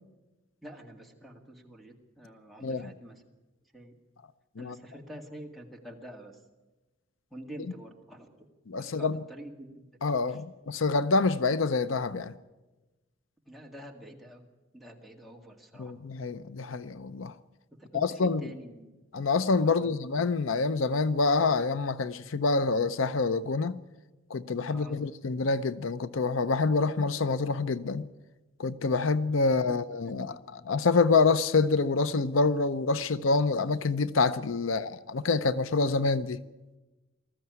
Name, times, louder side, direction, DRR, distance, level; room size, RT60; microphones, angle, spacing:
voice 1, 0.6-3.2 3.7-3.9 4.6-6.4 7.3-8.5 8.8-9.9 10.3-10.4 13.5-14.5 14.7-15.9 17.8-18.9 19.6-20.1 24.7-25.0 29.6-30.4 34.6-34.7, right 1 dB, ahead, 2.1 m, -47 dB
voice 2, 8.7-9.2 10.0-12.3 15.8-17.3 17.9-18.5 19.1-23.8 24.3-28.1 28.6-30.3 30.7-36.4, left 4 dB, 80° left, 0.7 m, -26 dB
20.0 x 14.0 x 9.4 m
head